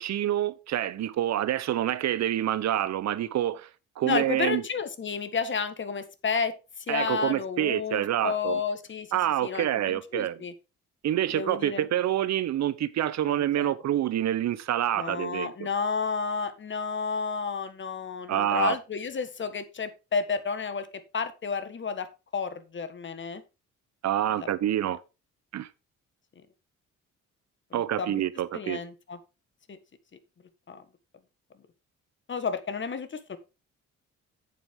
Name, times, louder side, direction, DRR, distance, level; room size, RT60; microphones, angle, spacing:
voice 1, 0.0-3.7 4.0-4.6 6.9-8.6 9.1-10.4 11.0-15.5 18.3-18.8 24.0-25.0 25.5-25.7 27.7-28.8, right 12 dB, 65° right, 0.9 m, -27 dB
voice 2, 4.0-6.5 6.9-9.1 9.4-10.5 11.3-11.9 13.3-13.7 15.0-20.9 21.1-23.4 24.3-24.5 27.7-28.1 28.5-29.2 29.7-29.8 30.7-30.8 32.3-33.4, left 5 dB, 40° left, 1.5 m, -31 dB
9.2 x 7.6 x 3.7 m
cardioid pair, 90°, 30 cm